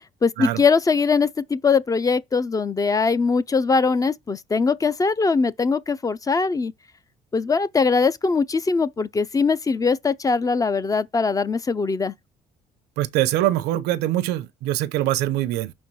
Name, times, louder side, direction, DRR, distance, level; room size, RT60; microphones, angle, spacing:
voice 1, 0.2-6.7 7.3-12.1, left 4 dB, 20° left, 0.4 m, -21 dB
voice 2, 13.0-15.7, right 14 dB, 85° right, 0.7 m, -23 dB
5.9 x 4.3 x 6.2 m
cardioid pair, 110°, 17 cm